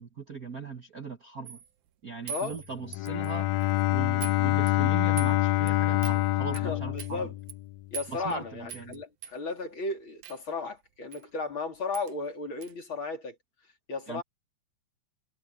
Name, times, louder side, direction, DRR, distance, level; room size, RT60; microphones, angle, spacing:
voice 1, 0.0-1.6 2.0-3.5 3.9-7.3 8.1-9.0 14.1-14.2, right 4 dB, 40° right, 1.5 m, -39 dB
sound 1, 1.4-1.7 2.3-3.3 3.6-3.8 4.2-4.4 4.7-5.3 5.7-5.8 6.0-6.2 6.5-6.6 7.0-7.1 7.5-7.6 7.9-8.3 8.7-9.0 9.2-9.4 10.2-10.4 11.1-11.2 11.5-11.6 11.9-12.1 12.6-12.7, right 9 dB, 80° right, 2.4 m, -41 dB
Bowed string instrument, 2.8-7.8, left 16 dB, 80° left, 1.8 m, -26 dB
voice 2, 6.5-7.3 7.9-13.4 13.9-14.2, left 3 dB, 45° left, 3.9 m, -35 dB
omnidirectional pair, 3.3 m